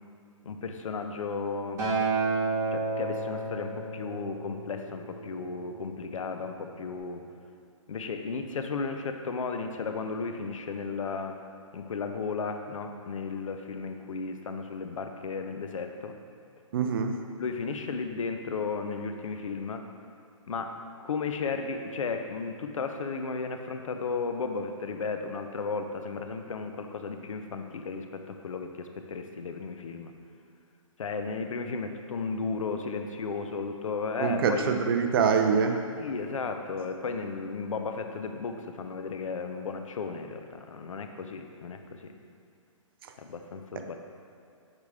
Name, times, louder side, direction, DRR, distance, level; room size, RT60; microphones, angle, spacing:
voice 1, 0.4-1.8 2.7-7.3 7.9-11.4 11.7-16.2 17.4-19.8 20.5-30.1 31.0-34.8 36.0-42.1 43.2-44.0, left 4 dB, 75° left, 6 dB, 0.6 m, -34 dB
Acoustic guitar, 1.8-6.1 6.9-7.0, right 3 dB, 20° right, 1.5 m, -31 dB
voice 2, 16.7-17.1 34.2-35.8, right 6 dB, 45° right, 5 dB, 0.6 m, -24 dB
6.6 x 4.9 x 3.5 m, 2.5 s
hypercardioid pair, 145°, 17 cm